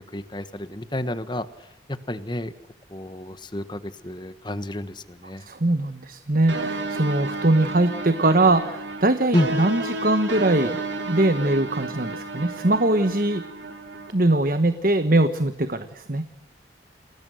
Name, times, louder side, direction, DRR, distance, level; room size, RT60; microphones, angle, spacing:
voice 1, 0.0-1.5 1.9-2.5 2.9-5.5 9.3-9.5, left 1 dB, 25° left, 11 dB, 1.4 m, -29 dB
voice 2, 5.4-10.8 11.1-13.4 14.1-16.3, right 2 dB, 50° right, 10 dB, 1.2 m, -22 dB
sound 1, 6.5-14.1, right 2 dB, 80° right, 3.5 m, -32 dB
29.5 x 20.0 x 6.4 m, 0.87 s
head